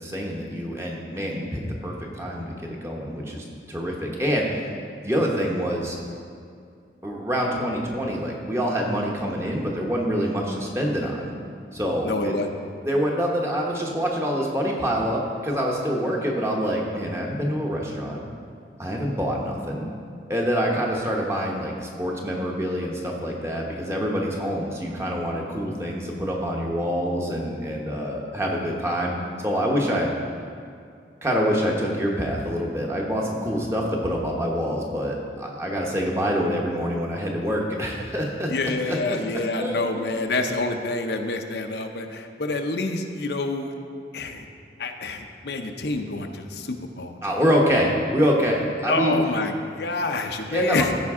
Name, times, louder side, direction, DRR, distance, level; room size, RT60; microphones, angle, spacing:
voice 1, 0.0-4.7 5.0-6.0 7.0-11.3 11.7-12.4 12.8-18.2 18.8-19.9 20.3-29.1 29.4-30.1 31.2-38.5 38.9-39.2 39.6-40.0 47.2-49.2 50.5-50.9, equal, 15° right, -1 dB, 0.9 m, -26 dB
voice 2, 12.0-12.5 38.5-43.7 44.1-44.5 44.8-47.4 48.9-50.9, left 3 dB, 70° left, 5 dB, 0.6 m, -27 dB
14.5 x 5.2 x 3.6 m, 2.3 s
head